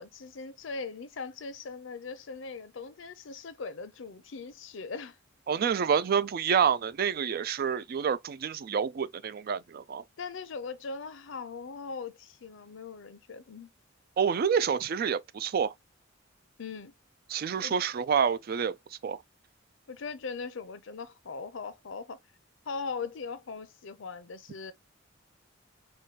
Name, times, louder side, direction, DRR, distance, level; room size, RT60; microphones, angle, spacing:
voice 1, 0.0-5.2 10.2-13.7 16.6-16.9 17.6-17.7 19.9-22.2 22.7-24.7, left 4 dB, 70° left, 0.6 m, -40 dB
voice 2, 5.5-10.0 14.2-15.7 17.3-18.8 19.0-19.2, right 7 dB, 50° right, 0.3 m, -28 dB
4.6 x 2.2 x 2.8 m
head